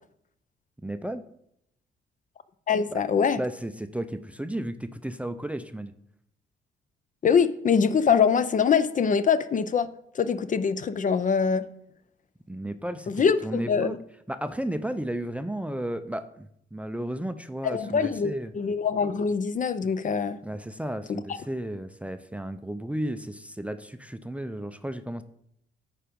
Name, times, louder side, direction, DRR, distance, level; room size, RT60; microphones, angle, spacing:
voice 1, 0.8-1.2 2.9-3.0 3.4-5.9 12.5-14.0 14.3-18.5 20.4-25.2, right 1 dB, 5° right, 10 dB, 0.5 m, -33 dB
voice 2, 2.7-3.4 7.2-9.9 10.1-11.6 13.1-14.0 17.6-20.4, left 6 dB, 40° left, 13 dB, 0.6 m, -23 dB
9.0 x 5.0 x 5.2 m, 0.74 s
cardioid pair, 90°, 20 cm